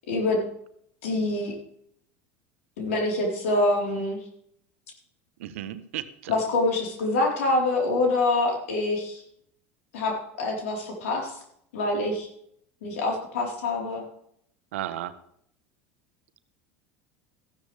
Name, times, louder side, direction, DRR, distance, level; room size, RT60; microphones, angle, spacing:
voice 1, 0.1-0.4 1.0-1.5 2.8-4.2 6.3-9.2 9.9-11.4 11.7-12.3 12.8-14.0, left 2 dB, 85° left, -1 dB, 4.3 m, -25 dB
voice 2, 5.4-6.3 14.7-15.1, right 13 dB, 85° right, 11 dB, 1.1 m, -34 dB
14.5 x 13.5 x 3.5 m, 0.68 s
supercardioid pair, 105°, 7 cm